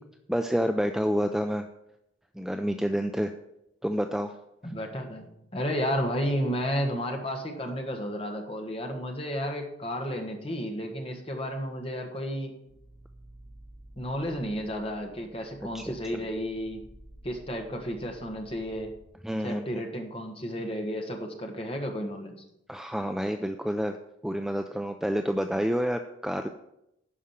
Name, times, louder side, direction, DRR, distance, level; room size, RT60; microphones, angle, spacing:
voice 1, 0.3-1.7 2.4-3.3 3.8-4.3 15.7-15.8 19.2-19.8 22.7-24.0 24.2-26.5, equal, ahead, 6 dB, 0.3 m, -28 dB
voice 2, 4.6-12.5 14.0-16.8 17.2-18.9 19.4-22.4, equal, 30° left, 3 dB, 1.5 m, -32 dB
sound 1, 12.7-19.1, right 1 dB, 50° right, 1.9 m, -52 dB
11.0 x 4.9 x 7.3 m, 0.83 s
head